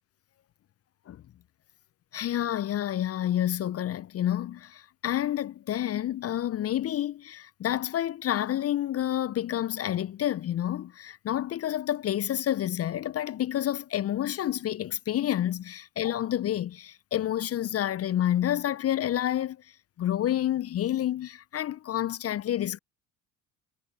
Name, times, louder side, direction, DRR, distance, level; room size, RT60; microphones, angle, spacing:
voice 1, 2.1-19.6 20.0-22.8, left 12 dB, 35° left, 0.7 m, -29 dB
figure-of-eight pair, 55°, 41 cm